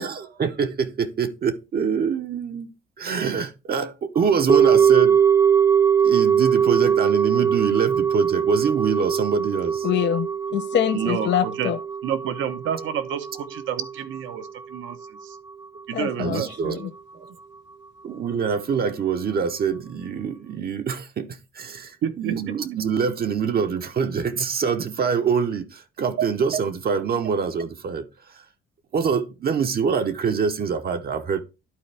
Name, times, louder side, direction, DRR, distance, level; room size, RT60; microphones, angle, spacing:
voice 1, 0.0-5.2 6.0-9.9 16.2-17.3 18.0-28.4 28.9-31.4, right 6 dB, 50° right, 0.8 m, -25 dB
sound 1, 4.5-14.8 15.0-15.1, right 8 dB, 15° right, 0.6 m, -21 dB
voice 2, 9.8-11.8 15.9-16.9, left 10 dB, 65° left, 0.6 m, -25 dB
voice 3, 10.9-11.7 12.0-15.0 15.2-15.4 15.9-16.5 22.0-22.3 26.2-26.3, right 9 dB, 80° right, 1.0 m, -29 dB
11.5 x 4.2 x 3.4 m
cardioid pair, 90°, 20 cm